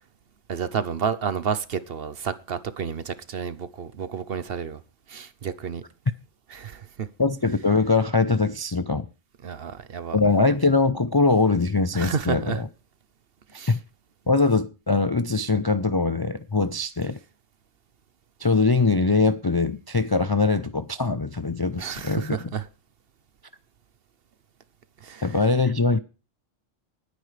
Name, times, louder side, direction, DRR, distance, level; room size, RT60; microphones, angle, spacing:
voice 1, 0.5-4.8 5.1-5.8 6.5-7.1 9.4-10.2 11.9-12.6 13.5-13.7 21.8-22.6 25.0-25.4, right 6 dB, 55° right, 0.9 m, -30 dB
voice 2, 7.2-9.1 10.1-12.7 13.7-13.8 14.3-17.2 18.4-22.4 25.2-26.0, left 3 dB, 35° left, 0.3 m, -22 dB
20.0 x 9.5 x 3.3 m
omnidirectional pair, 1.3 m